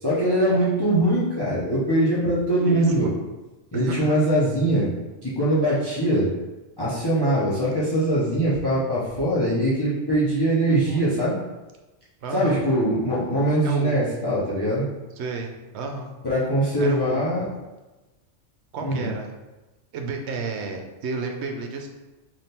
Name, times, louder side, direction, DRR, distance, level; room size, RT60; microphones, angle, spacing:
voice 1, 0.0-3.1 3.7-4.9 5.2-6.3 6.8-11.4 12.3-14.9 16.2-17.5 18.8-19.1, right 1 dB, 25° left, -9 dB, 0.8 m, -22 dB
voice 2, 2.6-3.1 3.7-4.2 10.9-11.0 12.2-12.6 13.6-14.0 15.2-16.1 16.8-17.5 18.7-19.3 19.9-21.9, right 4 dB, 70° right, 2 dB, 0.8 m, -32 dB
3.5 x 2.6 x 4.2 m, 1.1 s
omnidirectional pair, 1.3 m